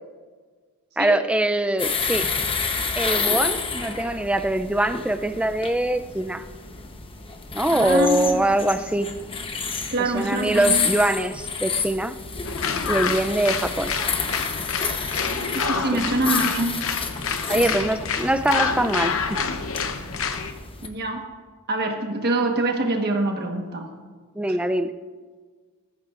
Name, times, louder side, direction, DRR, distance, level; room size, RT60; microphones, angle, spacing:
voice 1, 1.0-2.3 3.0-6.4 7.5-9.1 10.0-12.2 12.9-13.9 15.7-15.8 17.5-19.4 24.4-24.9, right 1 dB, 5° right, 9 dB, 0.4 m, -23 dB
sound 1, 1.8-20.9, left 5 dB, 25° left, 0.9 m, -30 dB
voice 2, 7.7-8.4 9.9-10.9 15.5-16.8 17.5-17.9 20.8-21.2 21.7-23.9 24.5-24.6, right 2 dB, 45° right, 3 dB, 1.3 m, -25 dB
sound 2, 12.4-20.5, left 5 dB, 65° left, 0.8 m, -27 dB
20.0 x 14.0 x 2.5 m, 1.5 s
head